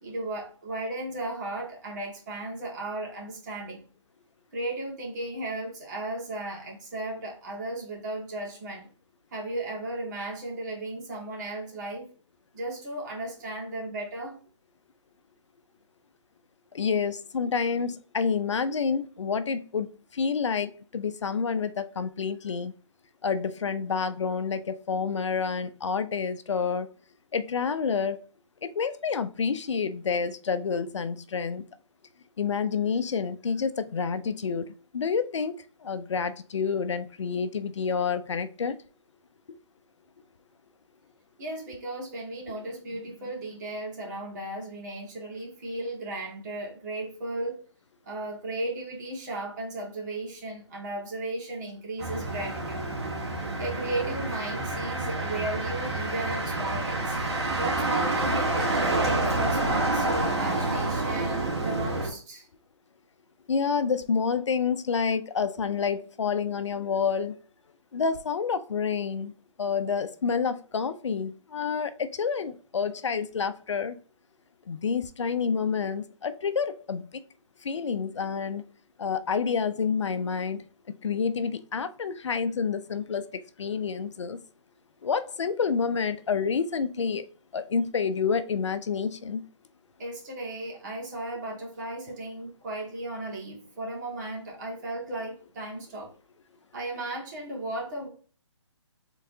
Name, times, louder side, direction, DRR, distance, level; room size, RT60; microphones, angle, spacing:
voice 1, 0.0-3.8 4.5-8.9 9.3-12.1 12.5-14.4 41.4-47.6 48.0-52.9 53.6-57.2 57.6-62.4 90.0-96.1 96.7-98.1, right 2 dB, 35° right, 1.9 m, -35 dB
voice 2, 16.7-19.9 20.1-22.7 23.2-26.9 27.3-28.2 28.6-31.7 32.4-35.5 35.8-38.8 39.5-39.6 63.5-67.4 67.9-69.3 69.6-74.0 74.7-77.1 77.6-78.6 79.0-80.6 81.0-84.4 85.0-87.2 87.5-89.5, left 6 dB, 75° left, 0.5 m, -28 dB
Motor vehicle (road), 52.0-62.1, right 2 dB, 60° right, 2.0 m, -28 dB
4.5 x 3.7 x 2.7 m
hypercardioid pair, 155°, 15 cm